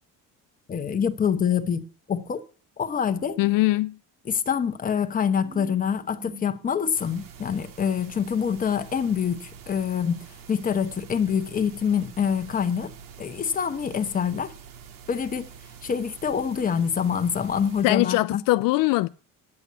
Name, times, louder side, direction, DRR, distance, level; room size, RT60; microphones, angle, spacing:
voice 1, 0.7-2.4 2.8-3.4 4.2-12.9 13.2-14.5 15.1-15.5 15.8-18.4, left 7 dB, 25° left, 1.0 m, -26 dB
sound 1, 3.1-3.8 5.3-7.3, right 5 dB, 35° right, 2.3 m, -47 dB
voice 2, 3.4-3.9 17.8-19.1, left 19 dB, 75° left, 0.5 m, -21 dB
sound 2, 6.9-17.8, right 7 dB, 75° right, 1.8 m, -46 dB
9.8 x 8.0 x 6.8 m
cardioid pair, 145°, 34 cm